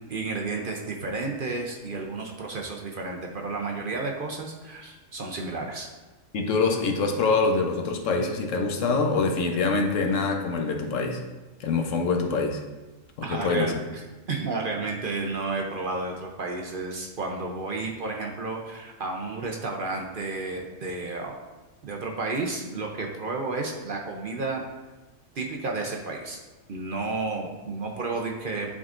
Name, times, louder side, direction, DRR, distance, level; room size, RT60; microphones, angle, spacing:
voice 1, 0.1-5.9 13.2-13.8 14.3-21.3 21.8-24.6 25.4-26.4 26.7-28.7, right 3 dB, 50° right, 1 dB, 0.7 m, -31 dB
voice 2, 6.3-11.2 11.6-12.6 13.3-13.7, left 4 dB, 75° left, 3 dB, 1.1 m, -25 dB
10.5 x 3.7 x 2.5 m, 1.2 s
omnidirectional pair, 1.3 m